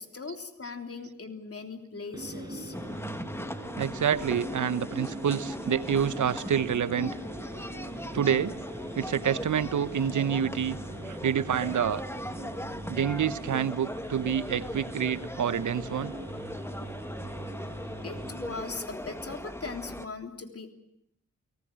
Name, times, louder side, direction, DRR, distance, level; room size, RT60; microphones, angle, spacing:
voice 1, 0.0-2.7 16.8-16.9 18.0-20.7, left 4 dB, 50° left, 5 dB, 3.4 m, -39 dB
sound 1, 2.1-18.5, right 1 dB, 10° right, 7.2 m, -41 dB
sound 2, 2.7-20.1, left 1 dB, 10° left, 1.7 m, -39 dB
voice 2, 3.8-7.2 8.1-8.5 8.9-10.8 11.1-12.0 12.9-16.1, right 8 dB, 70° right, 15 dB, 0.9 m, -27 dB
30.0 x 18.5 x 7.6 m, 0.76 s
cardioid pair, 50°, 31 cm